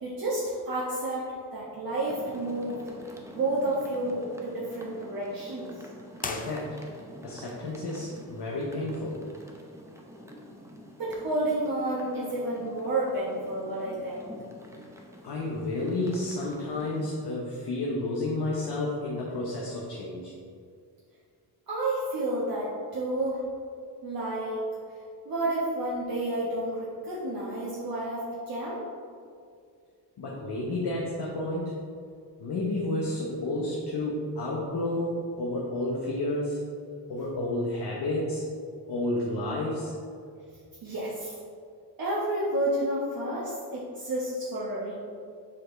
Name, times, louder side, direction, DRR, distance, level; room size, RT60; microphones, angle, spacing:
voice 1, 0.0-2.8 3.3-5.7 11.0-14.3 21.7-23.4 24.0-24.7 25.2-28.8 40.8-41.3 42.0-45.0, right 1 dB, 55° right, -8 dB, 1.3 m, -30 dB
sound 1, 2.1-17.1, equal, 5° right, 0.8 m, -47 dB
voice 2, 6.2-6.8 7.2-9.2 15.2-20.3 30.2-31.8 32.4-36.6 37.1-38.5 38.9-40.0, left 2 dB, 65° left, -3 dB, 1.0 m, -31 dB
sound 2, 6.2-7.2, left 4 dB, 20° left, 0.4 m, -38 dB
7.4 x 4.4 x 3.2 m, 2.3 s
cardioid pair, 85°, 43 cm